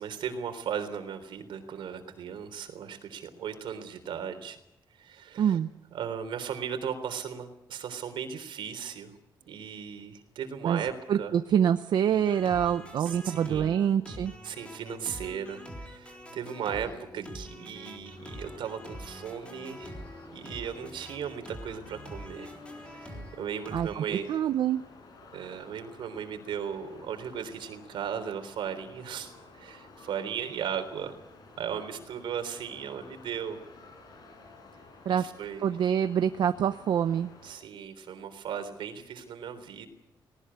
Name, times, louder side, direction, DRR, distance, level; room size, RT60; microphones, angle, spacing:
voice 1, 0.0-4.6 5.0-5.6 5.9-9.1 9.4-11.3 13.0-13.8 14.4-20.0 20.3-22.5 22.8-24.4 25.3-31.2 31.6-33.6 35.0-35.7 37.4-39.9, right 8 dB, 85° right, 7 dB, 3.6 m, -37 dB
voice 2, 5.4-5.7 10.6-10.8 11.1-14.3 23.7-24.8 35.1-35.2 35.6-37.3, right 9 dB, 65° right, 9 dB, 0.8 m, -26 dB
sound 1, 12.1-24.0, equal, 15° left, 3.9 m, -45 dB
sound 2, 18.2-37.6, left 3 dB, 55° left, 5.7 m, -53 dB
19.0 x 18.5 x 9.8 m, 0.82 s
wide cardioid pair, 175°, 8 cm